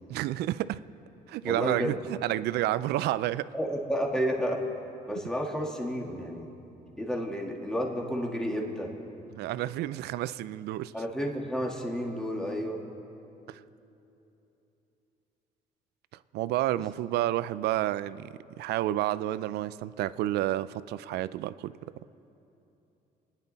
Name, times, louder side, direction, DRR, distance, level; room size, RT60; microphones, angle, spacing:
voice 1, 0.1-0.8 1.3-3.5 9.3-10.9 13.5-13.6 16.3-21.7, right 14 dB, 75° right, 17 dB, 0.4 m, -30 dB
voice 2, 1.4-2.0 3.5-4.7 5.1-6.5 7.0-8.9 10.9-12.8 16.7-16.8, equal, 5° left, 0 dB, 1.9 m, -31 dB
29.0 x 10.0 x 4.1 m, 3.0 s
cardioid pair, 110°, 17 cm